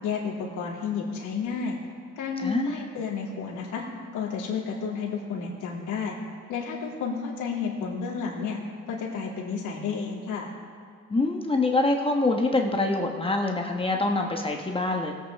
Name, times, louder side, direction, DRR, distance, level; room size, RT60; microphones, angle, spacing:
voice 1, 0.0-1.8 2.2-3.8 4.1-6.1 6.5-8.6 8.9-10.5, left 5 dB, 85° left, -3 dB, 2.6 m, -31 dB
voice 2, 2.4-2.8 11.1-15.1, left 2 dB, 20° left, 2 dB, 1.1 m, -25 dB
19.5 x 8.1 x 3.5 m, 2.3 s
cardioid pair, 90°, 30 cm